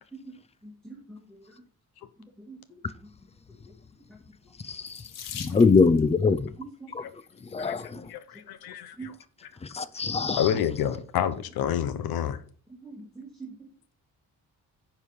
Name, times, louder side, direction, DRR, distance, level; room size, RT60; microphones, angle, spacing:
voice 1, 0.6-1.4 2.4-2.8 6.6-6.9 9.0-9.1 12.8-13.7, right 4 dB, ahead, 1.8 m, -43 dB
voice 2, 4.6-5.0 5.3-6.5 6.9-7.0 7.5-8.1 9.7-10.5, left 4 dB, 20° left, 0.4 m, -23 dB
Water tap faucet / Sink (filling or washing), 4.8-6.1 7.1-7.5 8.2-8.3 8.6-8.8, left 8 dB, 60° left, 1.3 m, -42 dB
voice 3, 7.6-9.1 9.4-9.5 10.4-12.4, left 9 dB, 85° left, 1.1 m, -29 dB
9.8 x 4.7 x 5.5 m
cardioid pair, 165°, 36 cm